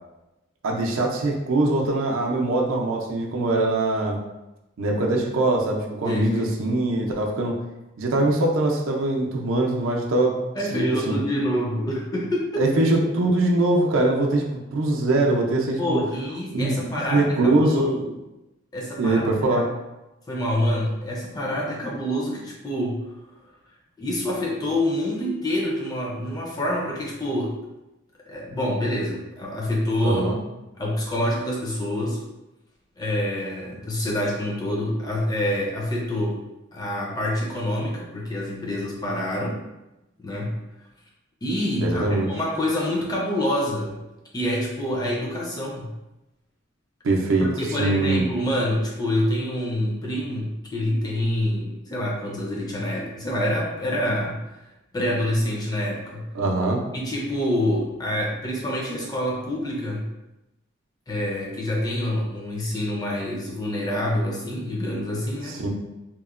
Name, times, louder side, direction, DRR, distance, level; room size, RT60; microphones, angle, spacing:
voice 1, 0.6-4.2 4.8-7.5 8.0-10.4 10.7-11.2 12.6-16.0 16.5-16.8 17.1-18.1 19.0-19.7 30.0-30.4 41.8-42.3 47.0-47.5 47.8-48.3 56.3-56.8 65.4-65.7, right 2 dB, 80° right, 0 dB, 0.5 m, -22 dB
voice 2, 6.0-6.5 10.5-12.7 15.8-17.9 18.7-19.6 20.3-23.2 24.0-27.5 28.3-30.3 30.8-32.2 33.0-36.4 36.7-39.6 40.2-40.5 41.4-44.0 44.3-45.9 47.4-54.4 54.9-56.3 56.9-60.1 61.1-65.6, left 1 dB, 20° left, -3 dB, 0.4 m, -26 dB
2.9 x 2.1 x 2.4 m, 0.97 s
head